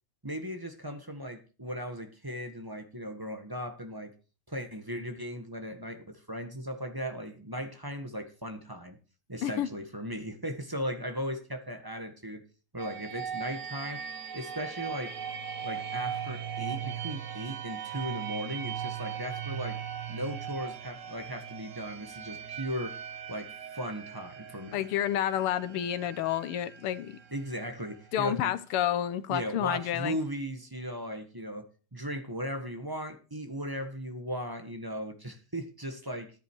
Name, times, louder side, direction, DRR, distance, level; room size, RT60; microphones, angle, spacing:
voice 1, 0.2-4.1 4.5-9.0 9.3-12.4 12.7-14.0 14.3-15.1 15.6-19.8 20.1-23.0 23.3-24.8 27.3-28.5 29.3-31.6 31.9-36.3, equal, 10° right, 1.2 m, -37 dB
sound 1, 12.8-28.4, right 8 dB, 50° right, 1.0 m, -39 dB
voice 2, 24.7-27.2 28.1-30.2, left 11 dB, 90° left, 1.8 m, -29 dB
13.5 x 11.0 x 4.7 m
omnidirectional pair, 2.4 m